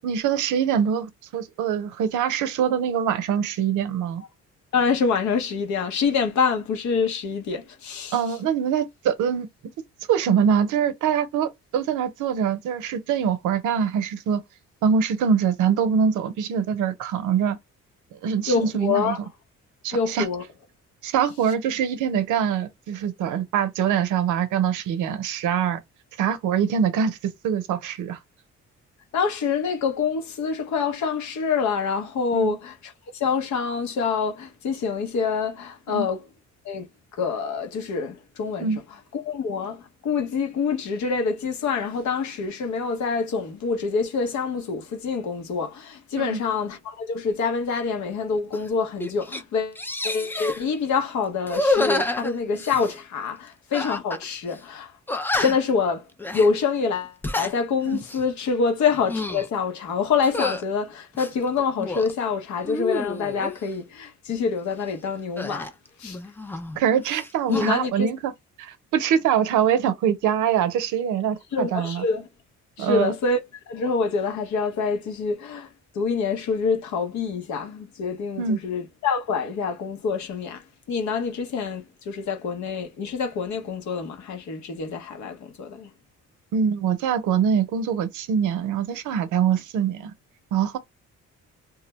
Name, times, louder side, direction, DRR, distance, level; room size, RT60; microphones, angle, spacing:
voice 1, 0.0-4.2 8.1-9.5 10.1-14.4 14.8-17.6 18.2-19.2 19.8-20.3 21.0-25.8 26.2-28.2 32.3-32.5 35.9-36.1 38.6-38.8 46.2-46.4 57.9-58.0 66.8-68.3 68.6-72.0 72.8-73.1 78.4-78.6 86.5-90.1 90.5-90.8, right 7 dB, 85° right, 0.6 m, -24 dB
voice 2, 4.7-8.2 18.5-19.2 19.9-20.4 29.1-36.2 36.6-36.9 37.1-38.7 39.1-54.9 55.4-65.7 66.0-66.2 67.5-68.1 71.5-72.3 72.8-73.4 73.7-85.9, left 5 dB, 70° left, 0.8 m, -26 dB
sound 1, 48.5-48.7 49.0-49.4 49.8-50.6 51.4-53.0 53.7-54.2 54.5-54.6 55.1-55.7 56.2-56.5 57.1-57.5 58.0-58.3 58.9-59.5 60.2-60.6 61.1-62.1 62.6-63.6 65.4-66.8 67.0-67.7, left 2 dB, 5° left, 0.3 m, -28 dB
2.3 x 2.1 x 2.9 m
cardioid pair, 90°, 30 cm